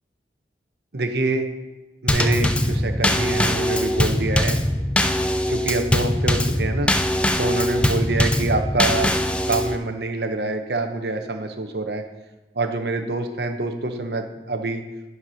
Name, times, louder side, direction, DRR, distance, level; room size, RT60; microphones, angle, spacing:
voice 1, 0.9-1.5 2.0-4.6 5.5-6.9 7.4-12.0 12.5-14.8, right 2 dB, 70° right, 6 dB, 0.9 m, -26 dB
Drum kit / Snare drum / Bass drum, 2.1-9.8, left 1 dB, 5° left, 0.3 m, -21 dB
10.5 x 4.7 x 5.7 m, 1.1 s
head